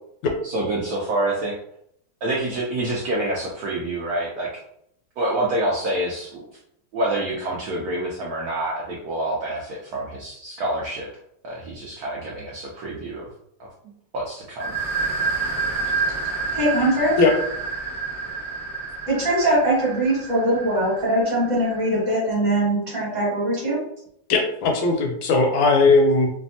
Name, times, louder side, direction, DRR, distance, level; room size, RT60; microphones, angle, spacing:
voice 1, 0.4-1.5 2.2-4.5 5.2-6.6 6.9-11.1 11.4-13.3 14.1-14.7, right 1 dB, 75° right, -3 dB, 0.9 m, -27 dB
sound 1, 14.6-22.1, right 4 dB, 15° right, 0.6 m, -29 dB
voice 2, 16.5-17.1 19.1-23.8, right 1 dB, 45° right, -6 dB, 1.4 m, -21 dB
voice 3, 24.3-26.3, left 3 dB, 80° left, 3 dB, 1.3 m, -18 dB
3.3 x 2.0 x 2.6 m, 0.71 s
omnidirectional pair, 2.1 m